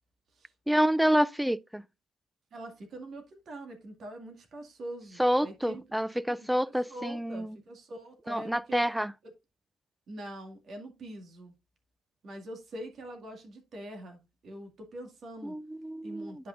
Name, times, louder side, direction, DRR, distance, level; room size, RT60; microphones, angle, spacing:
voice 1, 0.7-1.8 5.2-7.6 8.3-9.1 15.4-16.4, equal, 5° right, 0.3 m, -28 dB
voice 2, 2.5-5.8 6.1-8.9 9.2-9.3 10.1-11.5 12.2-15.5 16.0-16.5, right 1 dB, 60° right, 2.1 m, -44 dB
9.9 x 5.6 x 2.5 m
cardioid pair, 90°, 0 cm